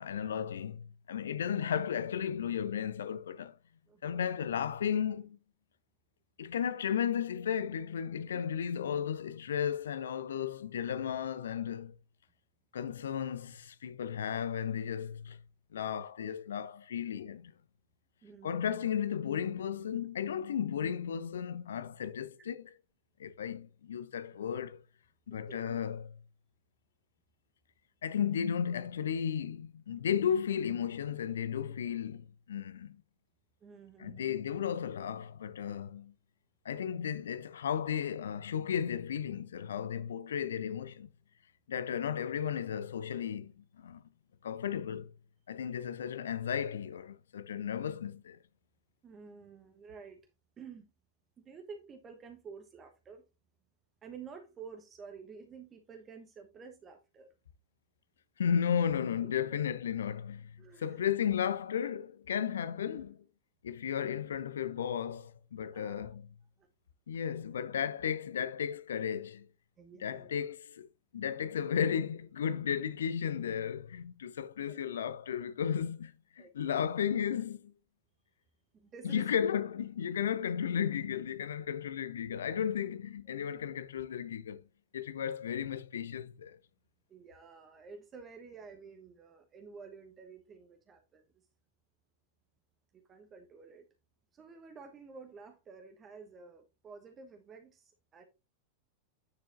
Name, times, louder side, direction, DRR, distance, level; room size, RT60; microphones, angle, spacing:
voice 1, 0.0-3.6 4.0-5.4 6.4-12.0 12.7-15.4 15.7-17.5 18.4-22.7 23.2-24.8 25.3-26.1 28.0-33.0 34.0-36.1 36.6-41.1 41.7-44.0 44.4-45.1 45.5-48.4 58.4-63.2 63.6-66.2 67.1-69.5 70.0-70.9 71.1-77.7 79.0-84.6 84.9-86.6, left 8 dB, 65° left, 0.6 m, -34 dB
voice 2, 3.9-4.3 8.3-8.5 18.2-18.8 25.5-25.8 33.6-34.4 49.0-50.2 50.6-50.9 51.4-53.2 54.0-57.3 59.4-59.6 60.6-61.1 65.7-66.1 66.6-66.7 69.8-70.3 74.7-74.8 76.4-76.8 78.7-79.3 83.3-83.4 87.1-91.2 92.9-93.9 94.3-98.2, right 5 dB, 25° right, 1.1 m, -51 dB
9.7 x 6.2 x 2.6 m
figure-of-eight pair, 90°, 0 cm